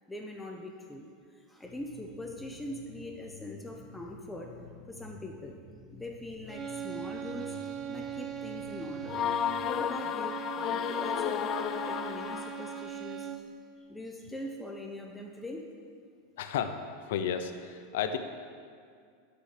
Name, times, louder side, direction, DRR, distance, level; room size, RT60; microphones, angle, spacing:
voice 1, 0.1-5.6 5.9-9.2 9.6-13.5 13.9-15.6, left 1 dB, 5° left, 1 dB, 0.9 m, -42 dB
sound 1, 1.6-9.6, left 3 dB, 75° right, 3.0 m, -51 dB
sound 2, 6.5-13.6, right 9 dB, 35° right, 0.6 m, -40 dB
sound 3, 9.1-12.9, left 10 dB, 35° left, 0.4 m, -33 dB
voice 2, 16.4-18.2, left 8 dB, 75° left, 9 dB, 0.8 m, -33 dB
9.8 x 6.9 x 6.8 m, 2.1 s
supercardioid pair, 135°, 0 cm